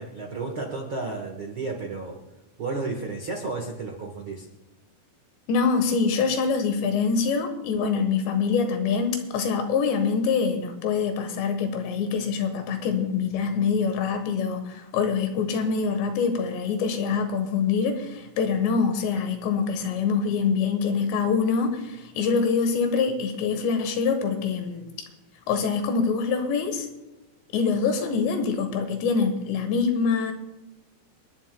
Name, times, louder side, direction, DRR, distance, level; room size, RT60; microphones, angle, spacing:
voice 1, 0.0-2.2 2.6-4.5, right 3 dB, 75° right, 1 dB, 1.2 m, -32 dB
voice 2, 5.5-24.9 25.5-26.9 27.5-30.3, left 5 dB, 90° left, 6 dB, 3.6 m, -25 dB
28.5 x 11.0 x 2.3 m, 1.0 s
omnidirectional pair, 4.9 m